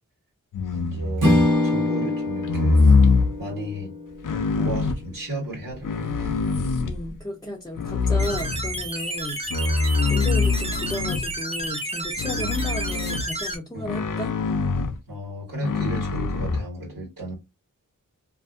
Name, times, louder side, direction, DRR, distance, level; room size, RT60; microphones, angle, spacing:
sound 1, 0.5-1.5 2.4-3.3 4.2-5.0 5.7-7.1 7.8-8.9 9.5-11.4 12.2-13.3 13.9-15.0 15.6-16.6, left 4 dB, 70° left, 0.5 m, -23 dB
voice 1, 0.7-1.4 1.6-2.8 3.4-3.9 4.5-6.4 12.3-12.6 13.7-13.9 15.1-17.3, right 1 dB, 85° right, 1.5 m, -34 dB
Strum, 1.2-5.8, left 1 dB, 65° right, 1.0 m, -25 dB
voice 2, 6.8-9.4 10.1-14.3, left 1 dB, 10° left, 0.6 m, -33 dB
sound 2, 8.2-13.6, right 2 dB, 20° right, 0.9 m, -31 dB
2.6 x 2.5 x 2.4 m
wide cardioid pair, 55°, 33 cm